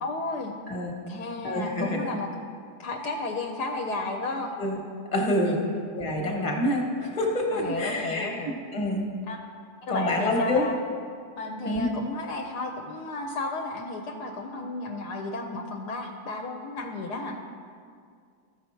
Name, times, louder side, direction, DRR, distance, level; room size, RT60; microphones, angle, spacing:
voice 1, 0.0-0.5 1.1-2.3 2.8-4.5 5.4-5.9 7.5-8.5 9.3-9.4 9.8-10.8 11.3-17.4, left 2 dB, 70° left, 3 dB, 1.2 m, -33 dB
voice 2, 1.4-2.0 4.6-4.8 5.1-5.5 5.9-8.3 8.7-9.1 9.9-10.6 11.6-11.9, left 1 dB, 25° left, 1 dB, 1.2 m, -26 dB
14.0 x 5.8 x 4.4 m, 2.2 s
omnidirectional pair, 1.9 m